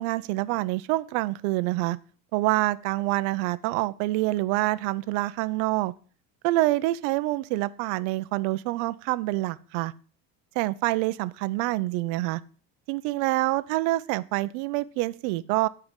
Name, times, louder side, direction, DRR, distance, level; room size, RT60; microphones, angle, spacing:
voice 1, 0.0-2.0 2.3-5.9 6.4-9.9 10.5-12.4 12.9-15.7, right 18 dB, 75° right, 15 dB, 0.9 m, -26 dB
14.0 x 4.9 x 8.3 m, 0.40 s
cardioid pair, 135°, 38 cm